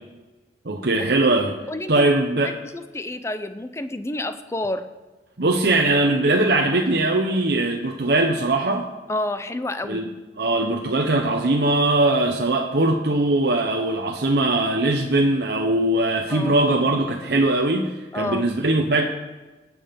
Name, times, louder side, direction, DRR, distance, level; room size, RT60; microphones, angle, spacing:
voice 1, 0.6-1.5 1.9-2.6 5.4-8.9 9.8-10.1 10.4-19.1, right 2 dB, 65° right, 1 dB, 0.9 m, -21 dB
voice 2, 1.7-2.1 2.4-4.8 9.1-10.1 16.3-16.6 18.1-18.5, left 1 dB, 15° left, 10 dB, 0.6 m, -29 dB
18.0 x 6.3 x 5.2 m, 1.2 s
head